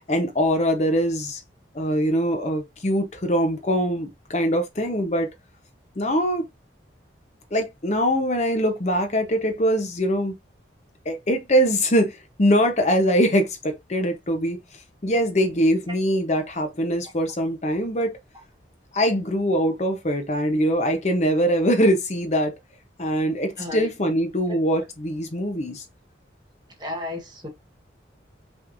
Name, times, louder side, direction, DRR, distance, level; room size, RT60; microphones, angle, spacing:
voice 1, 0.0-1.4 1.7-5.3 6.0-6.5 7.5-10.3 11.0-14.6 15.0-18.2 18.9-22.5 23.0-25.8, equal, 35° left, 0.8 m, -22 dB
voice 2, 23.6-23.9 24.5-24.6 26.8-27.5, left 2 dB, 25° right, 1.2 m, -33 dB
5.9 x 3.2 x 2.6 m
head